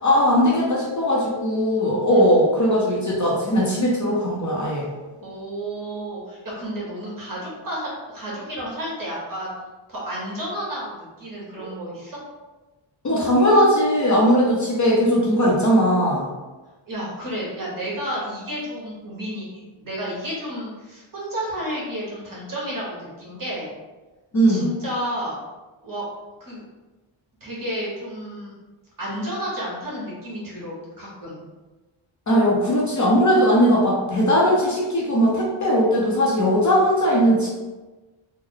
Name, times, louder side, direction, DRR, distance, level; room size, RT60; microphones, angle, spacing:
voice 1, 0.0-4.9 13.0-16.3 24.3-24.7 32.3-37.5, equal, 35° left, -4 dB, 0.6 m, -19 dB
voice 2, 5.2-9.5 9.9-12.2 16.9-19.5 19.7-23.7 24.5-25.3 25.8-26.0 26.4-26.6 27.4-28.5 29.0-31.5, equal, 40° right, -5 dB, 1.2 m, -31 dB
3.3 x 2.0 x 3.6 m, 1.2 s
wide cardioid pair, 155°, 50 cm